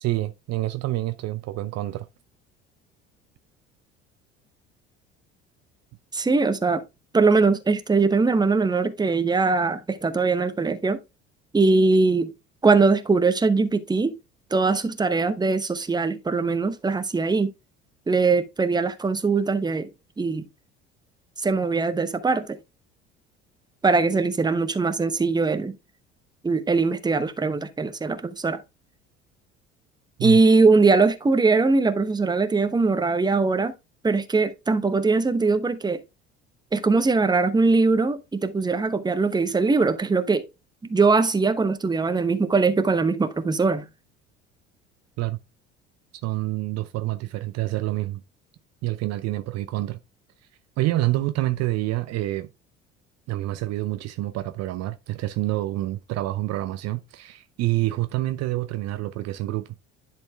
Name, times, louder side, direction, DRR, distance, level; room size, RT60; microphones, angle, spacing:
voice 1, 0.0-2.1 30.2-30.4 45.2-45.4 46.2-48.2 48.8-50.0 50.8-52.5 53.3-59.7, right 16 dB, 50° right, 0.6 m, -27 dB
voice 2, 6.1-6.8 7.1-11.0 11.5-12.3 12.6-14.1 14.5-17.5 18.1-19.9 20.2-20.4 21.4-22.6 23.8-25.7 26.4-28.6 30.2-33.7 34.0-36.0 36.7-40.5 40.8-43.9, right 4 dB, 10° right, 0.9 m, -21 dB
10.5 x 4.4 x 3.4 m
figure-of-eight pair, 60°, 35 cm